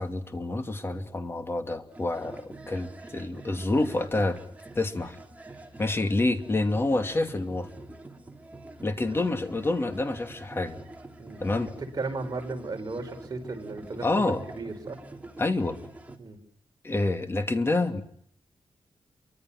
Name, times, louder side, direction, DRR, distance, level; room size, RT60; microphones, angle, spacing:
voice 1, 0.0-4.4 4.7-5.2 5.8-7.7 8.8-10.8 11.4-11.7 14.0-14.4 15.4-15.8 16.8-18.0, left 2 dB, 25° left, 7 dB, 2.6 m, -27 dB
sound 1, 1.9-16.2, right 2 dB, 15° right, 3.3 m, -46 dB
voice 2, 11.9-15.0 16.2-16.4, right 3 dB, 40° right, 3 dB, 5.7 m, -35 dB
28.5 x 24.5 x 6.1 m, 0.68 s
wide cardioid pair, 135°, 9 cm